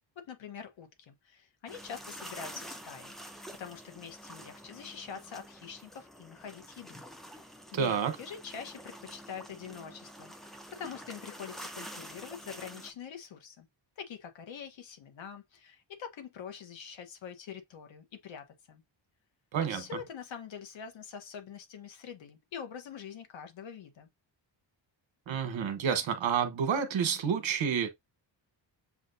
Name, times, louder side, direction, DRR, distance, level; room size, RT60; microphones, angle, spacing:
voice 1, 0.2-3.1 3.6-7.0 7.3-13.7 14.0-18.8 19.7-24.1, left 7 dB, 75° left, 1.2 m, -45 dB
sound 1, 1.7-12.9, equal, ahead, 0.6 m, -48 dB
voice 2, 7.7-8.2 19.5-19.9 25.3-27.9, right 7 dB, 75° right, 1.2 m, -29 dB
7.2 x 2.5 x 2.6 m
wide cardioid pair, 125°, 46 cm